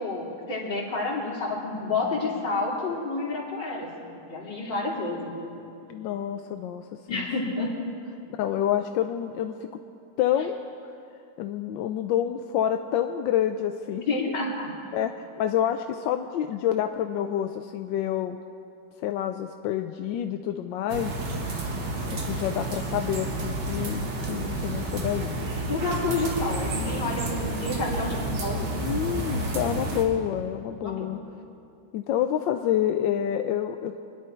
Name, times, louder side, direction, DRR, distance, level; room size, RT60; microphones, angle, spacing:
voice 1, 0.0-5.6 7.1-7.7 14.1-14.7 25.7-28.8 30.7-31.1, left 3 dB, 60° left, -3 dB, 3.2 m, -30 dB
voice 2, 5.9-7.5 8.4-9.7 10.2-10.6 11.4-14.3 14.9-15.1 15.4-18.4 19.0-21.1 22.2-25.3 28.8-31.2 31.9-33.9, left 10 dB, 75° left, 6 dB, 1.2 m, -28 dB
sound 1, 20.9-30.0, right 2 dB, 60° right, 2.1 m, -30 dB
25.5 x 10.5 x 4.4 m, 2.7 s
omnidirectional pair, 2.2 m